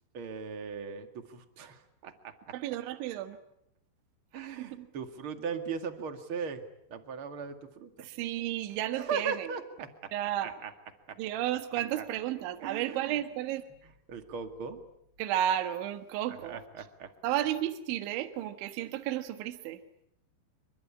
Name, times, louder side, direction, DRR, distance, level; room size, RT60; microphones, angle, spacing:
voice 1, 0.1-2.6 4.3-6.6 6.9-8.1 9.0-10.1 10.4-10.7 11.1-11.2 11.9-12.1 12.6-13.2 13.8-14.8 16.4-17.1, right 6 dB, 45° right, 7 dB, 1.8 m, -38 dB
voice 2, 2.5-3.4 4.6-4.9 8.0-9.5 10.1-10.5 11.2-13.6 15.2-16.6 17.2-19.8, right 12 dB, 75° right, 8 dB, 3.8 m, -32 dB
28.0 x 25.0 x 8.6 m, 0.78 s
omnidirectional pair, 5.6 m